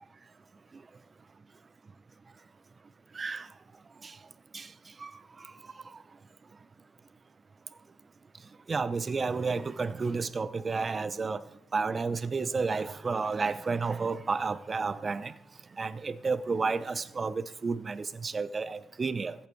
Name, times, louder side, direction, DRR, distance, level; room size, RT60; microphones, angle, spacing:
voice 1, 3.1-3.5 4.0-4.1 4.5-4.7 5.0-5.1 8.7-11.4 11.7-15.3 15.8-19.3, right 4 dB, 35° right, 15 dB, 0.7 m, -31 dB
14.5 x 8.7 x 4.6 m, 0.79 s
cardioid pair, 90°, 0 cm